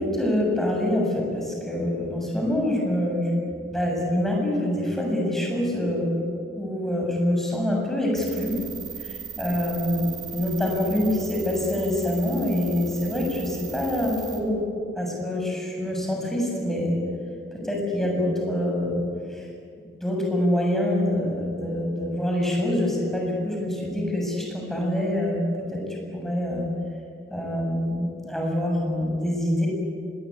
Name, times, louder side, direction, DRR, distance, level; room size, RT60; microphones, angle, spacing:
voice 1, 0.0-3.3 3.7-6.2 6.5-8.5 9.0-14.6 15.0-16.9 17.5-19.0 19.3-19.4 20.0-25.4 25.7-26.6 27.3-29.7, left 1 dB, ahead, -1 dB, 7.4 m, -25 dB
sound 1, 8.1-14.4, right 7 dB, 25° right, 3.6 m, -38 dB
25.0 x 21.0 x 9.9 m, 2.3 s
head